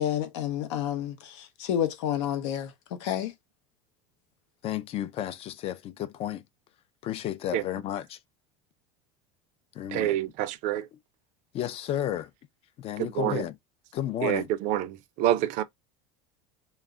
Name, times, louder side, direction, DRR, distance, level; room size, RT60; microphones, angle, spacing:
voice 1, 0.0-2.7 3.0-3.3, left 10 dB, 80° left, 0.7 m, -29 dB
voice 2, 4.6-6.4 7.0-8.2 9.8-10.1 11.5-12.3 12.8-13.6 13.9-14.5, left 11 dB, 40° left, 0.4 m, -32 dB
voice 3, 9.9-10.9 13.0-13.5 14.2-15.6, right 13 dB, 55° right, 0.4 m, -27 dB
2.2 x 2.0 x 3.5 m
supercardioid pair, 120°, 15 cm